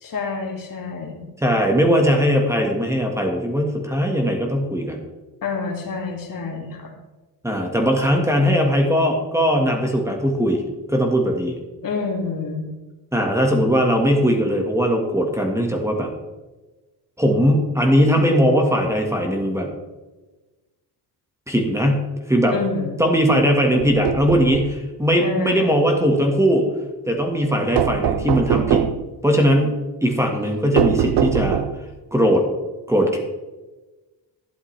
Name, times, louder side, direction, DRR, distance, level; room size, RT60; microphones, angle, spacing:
voice 1, 0.0-1.3 5.4-7.0 11.8-12.7 22.5-23.0 25.2-25.8, left 4 dB, 55° left, 2 dB, 2.2 m, -28 dB
voice 2, 1.4-5.0 7.4-10.6 10.9-11.6 13.1-16.1 17.2-19.7 21.5-22.5 23.0-26.7 27.0-28.9 29.2-29.8 30.0-31.6 32.1-32.5 32.9-33.2, equal, 5° right, 2 dB, 1.5 m, -19 dB
sound 1, 23.8-24.8 27.8-29.1 30.8-31.9, right 10 dB, 75° right, 0.7 m, -22 dB
12.0 x 10.5 x 3.3 m, 1.2 s
cardioid pair, 115°, 41 cm